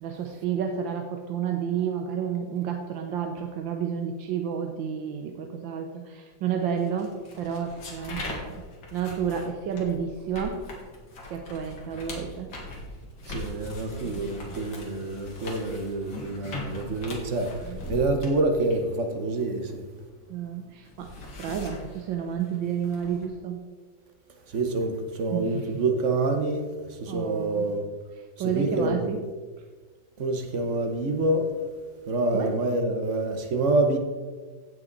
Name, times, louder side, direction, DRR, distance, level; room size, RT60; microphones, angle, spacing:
voice 1, 0.0-8.6 8.9-10.6 11.3-12.5 14.0-14.6 17.6-17.8 20.3-21.1 21.4-23.6 25.3-25.8 27.1-27.8 28.2-29.2 32.3-32.5, right 7 dB, 75° right, 1.5 m, -31 dB
sound 1, 6.8-20.3 20.6-23.3, left 2 dB, 80° left, 2.8 m, -40 dB
voice 2, 13.3-19.8 24.5-27.8 28.4-29.1 30.2-31.5 32.1-34.0, right 2 dB, 45° right, 1.2 m, -27 dB
16.5 x 5.9 x 4.0 m
omnidirectional pair, 2.1 m